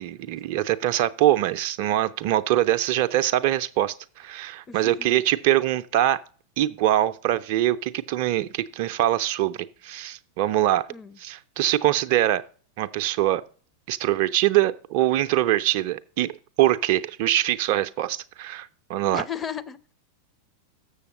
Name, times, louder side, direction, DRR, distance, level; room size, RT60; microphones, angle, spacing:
voice 1, 0.0-6.2 6.6-10.9 11.2-12.4 12.8-13.4 13.9-19.2, right 13 dB, 45° right, 0.4 m, -23 dB
voice 2, 4.7-5.2 10.9-11.2 19.1-19.9, left 7 dB, 20° left, 0.6 m, -35 dB
7.0 x 6.8 x 5.0 m
figure-of-eight pair, 90°, 0 cm